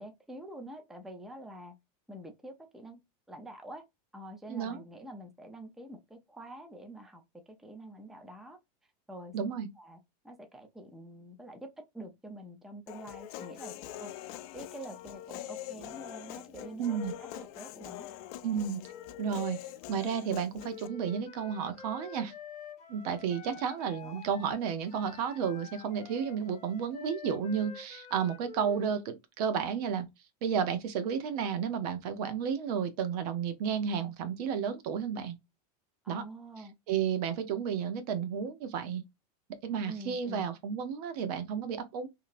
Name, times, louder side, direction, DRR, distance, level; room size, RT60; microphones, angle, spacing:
voice 1, 0.0-1.7 2.1-3.0 3.3-3.8 4.1-7.2 7.5-8.6 9.1-9.4 9.8-10.0 10.2-18.1 24.0-24.2 36.0-36.7 39.9-40.5, right 1 dB, ahead, 0.5 m, -46 dB
voice 2, 4.5-4.8 9.3-9.7 16.8-17.1 18.4-18.8 19.2-19.6 19.9-22.3 22.9-30.1 30.4-35.4 36.1-36.2 36.9-39.0 39.6-42.1, right 7 dB, 70° right, 0.8 m, -32 dB
Human voice, 12.9-20.9, left 13 dB, 65° left, 0.4 m, -44 dB
Wind instrument woodwind instrument, 20.7-29.0, left 5 dB, 35° left, 0.8 m, -48 dB
2.8 x 2.7 x 2.5 m
supercardioid pair, 130°, 21 cm